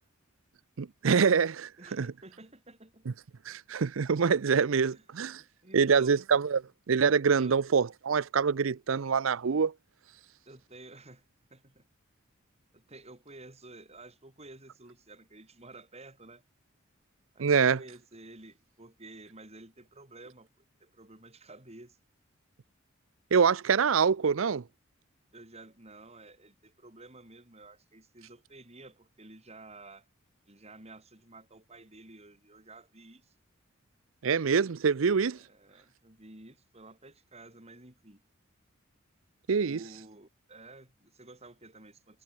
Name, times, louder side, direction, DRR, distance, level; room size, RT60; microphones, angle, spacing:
voice 1, 0.8-1.7 2.0-2.1 3.1-3.2 3.5-5.4 5.7-6.6 6.9-9.7 17.4-17.8 23.3-24.6 34.2-35.4 39.5-39.8, right 6 dB, 70° right, 0.6 m, -25 dB
voice 2, 1.8-3.1 4.9-5.0 5.4-6.2 7.4-7.6 10.5-11.2 11.5-11.8 12.7-16.4 17.3-20.5 20.8-22.0 25.3-30.1 30.5-33.3 35.4-38.2 39.6-42.2, right 2 dB, 30° right, 5.5 m, -52 dB
head